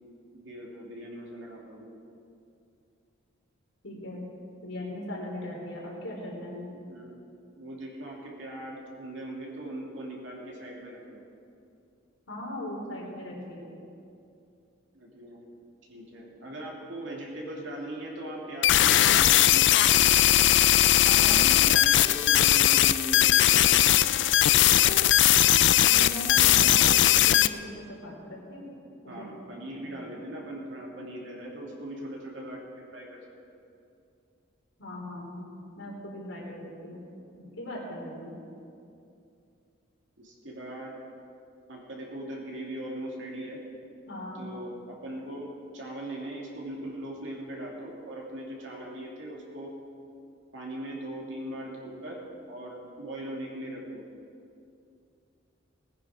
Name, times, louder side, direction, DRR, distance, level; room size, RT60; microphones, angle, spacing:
voice 1, 0.3-1.9 6.9-7.2 7.6-11.2 14.9-15.5 15.9-20.1 21.1-23.8 24.4-25.0 29.1-32.6 32.9-33.2 33.5-33.6 40.2-41.0 41.7-43.6 44.3-45.5 45.7-49.7 50.5-52.2 52.5-54.0, right 1 dB, 70° right, -2 dB, 2.7 m, -40 dB
voice 2, 3.8-4.3 4.6-6.7 12.3-13.7 21.0-21.3 25.8-28.6 29.0-29.3 30.0-30.1 34.8-35.5 35.8-37.0 37.5-38.3 44.1-44.4, left 1 dB, 85° left, -3 dB, 3.7 m, -39 dB
sound 1, 18.6-27.5, left 12 dB, 65° left, 0.4 m, -20 dB
19.0 x 9.8 x 5.0 m, 2.6 s
head